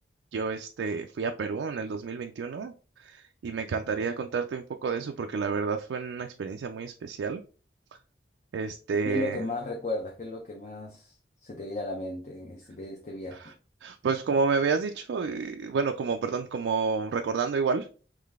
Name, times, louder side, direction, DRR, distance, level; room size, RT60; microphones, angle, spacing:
voice 1, 0.3-7.4 8.5-9.4 13.3-13.5 13.8-17.9, right 5 dB, 90° right, 5 dB, 0.3 m, -30 dB
voice 2, 9.0-11.2 11.4-13.5, left 2 dB, 40° left, 0 dB, 0.6 m, -35 dB
3.8 x 3.1 x 3.5 m, 0.38 s
head